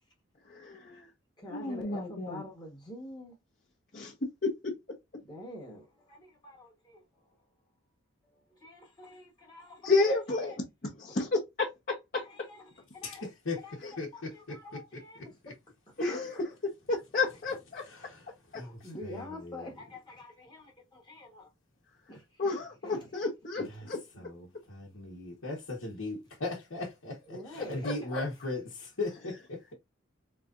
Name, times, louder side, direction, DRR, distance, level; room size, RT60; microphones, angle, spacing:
voice 1, 0.5-1.0 1.5-2.4 3.9-4.1 4.4-4.7 9.8-10.5 10.8-12.2 16.0-16.5 16.9-17.8 22.4-24.0 27.8-28.2, left 3 dB, 45° left, 0.8 m, -31 dB
voice 2, 1.4-3.4 5.3-7.0 8.3-10.4 11.1-11.2 12.2-13.3 13.6-13.8 14.1-15.5 16.1-16.4 18.5-21.5 22.1-22.4 22.8-23.2 23.6-23.7 27.3-28.2, left 1 dB, 20° left, 1.1 m, -47 dB
voice 3, 13.0-15.5 17.8-19.7 23.6-23.9 24.1-29.7, left 2 dB, 75° left, 1.1 m, -39 dB
3.9 x 3.2 x 2.4 m
head